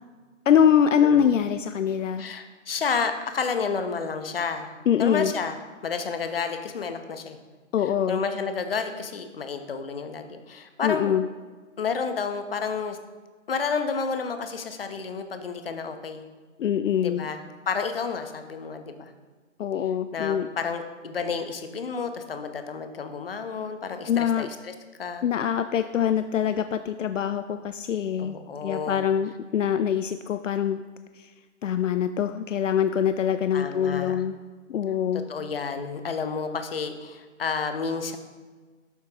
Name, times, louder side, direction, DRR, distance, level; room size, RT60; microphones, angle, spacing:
voice 1, 0.5-2.3 4.9-5.3 7.7-8.2 10.8-11.2 16.6-17.2 19.6-20.5 24.1-24.5 25.2-30.8 31.2-31.3 31.6-34.3 34.7-35.2, left 8 dB, 70° left, 10 dB, 0.5 m, -24 dB
voice 2, 2.2-5.6 5.8-7.4 7.8-11.1 11.8-13.0 13.5-16.2 17.0-17.4 17.7-19.1 20.1-25.3 28.2-29.0 33.5-34.2 35.1-38.2, left 5 dB, 45° left, 8 dB, 0.8 m, -31 dB
12.0 x 7.1 x 2.9 m, 1.4 s
hypercardioid pair, 170°, 39 cm